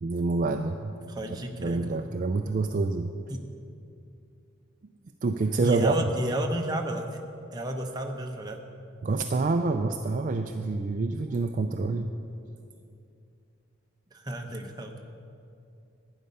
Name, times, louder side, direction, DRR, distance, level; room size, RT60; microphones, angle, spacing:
voice 1, 0.0-0.9 1.3-3.1 5.2-5.9 9.0-12.1, right 3 dB, 40° right, 5 dB, 0.3 m, -27 dB
voice 2, 1.1-1.8 3.3-3.4 5.6-7.2 7.5-8.6 14.1-14.9, right 1 dB, 20° right, 3 dB, 0.8 m, -31 dB
11.5 x 9.5 x 5.4 m, 2.6 s
head